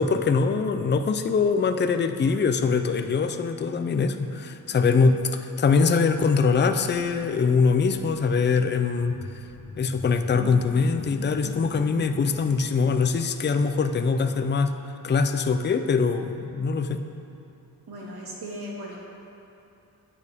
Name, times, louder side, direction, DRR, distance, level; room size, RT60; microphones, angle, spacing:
voice 1, 0.0-9.2 9.8-14.7 15.0-17.0, left 5 dB, 30° left, 8 dB, 0.4 m, -23 dB
sound 1, 6.2-12.6, left 2 dB, 75° left, 1.2 m, -43 dB
voice 2, 17.9-19.0, equal, 75° right, -3 dB, 2.0 m, -37 dB
13.0 x 8.7 x 3.5 m, 2.8 s
wide cardioid pair, 150°, 39 cm